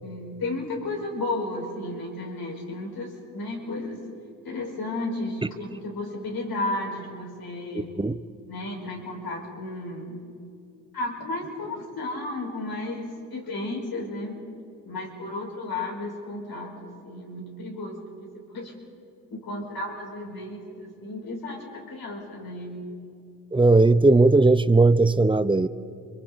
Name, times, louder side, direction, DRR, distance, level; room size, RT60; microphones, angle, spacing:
voice 1, 0.0-4.0 4.4-7.9 8.5-10.2 10.9-14.4 14.8-18.7 19.3-23.0, left 2 dB, 55° left, -1 dB, 5.4 m, -33 dB
voice 2, 7.7-8.1 23.5-25.7, right 3 dB, 10° right, 15 dB, 0.7 m, -18 dB
29.5 x 23.5 x 4.1 m, 2.5 s
supercardioid pair, 60°, 43 cm